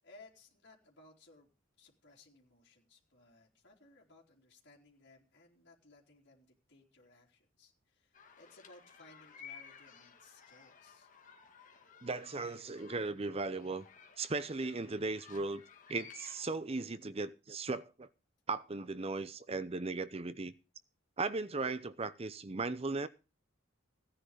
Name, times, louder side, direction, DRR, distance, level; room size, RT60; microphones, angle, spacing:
voice 1, 0.0-1.5 1.8-11.1, left 2 dB, 55° left, 3.8 m, -61 dB
sound 1, 8.1-16.4, left 6 dB, 40° left, 1.9 m, -56 dB
voice 2, 12.0-13.9 14.2-15.6 15.9-18.1 18.5-20.5 21.2-23.1, right 3 dB, 30° right, 0.6 m, -37 dB
16.0 x 10.0 x 5.0 m
head